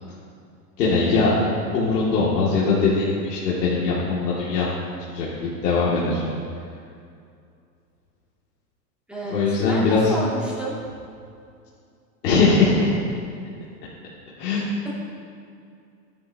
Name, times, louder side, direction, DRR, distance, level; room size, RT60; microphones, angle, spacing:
voice 1, 0.8-1.3 1.7-4.7 5.1-6.2 9.3-10.1 12.2-12.9 14.4-14.7, left 4 dB, 75° left, -7 dB, 2.4 m, -21 dB
voice 2, 9.7-10.7, equal, ahead, -7 dB, 2.2 m, -29 dB
13.0 x 9.6 x 2.8 m, 2.4 s
hypercardioid pair, 135°, 49 cm